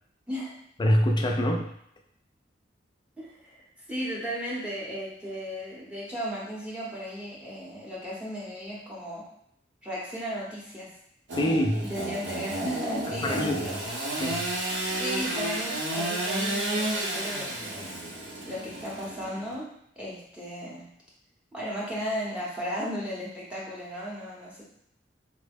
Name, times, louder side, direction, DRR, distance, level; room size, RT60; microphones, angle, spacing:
voice 1, 0.8-1.7 11.3-11.9 13.2-13.6 14.2-14.5, equal, 25° left, 2 dB, 0.3 m, -24 dB
voice 2, 3.2-9.2 9.8-10.9 11.8-13.8 15.0-17.9 18.4-19.7 20.0-20.9 21.5-24.6, equal, 5° right, -6 dB, 0.7 m, -35 dB
Engine / Sawing, 11.3-19.5, right 1 dB, 65° right, 0.7 m, -31 dB
3.7 x 2.0 x 3.4 m, 0.73 s
head